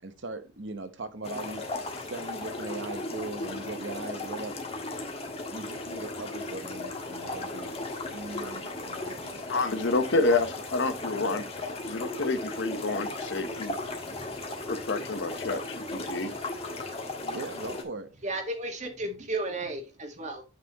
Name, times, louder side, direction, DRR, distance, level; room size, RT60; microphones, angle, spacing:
voice 1, 0.0-1.7 2.0-4.5 5.5-7.7 8.1-9.4 17.2-18.1, right 3 dB, 65° right, 1.0 m, -39 dB
sound 1, 1.2-17.8, left 2 dB, 30° left, 1.6 m, -36 dB
voice 2, 9.5-11.4 11.9-13.7 14.6-16.3, left 3 dB, 65° left, 1.0 m, -28 dB
voice 3, 18.2-20.4, right 2 dB, 35° right, 1.6 m, -33 dB
8.8 x 5.8 x 2.9 m
head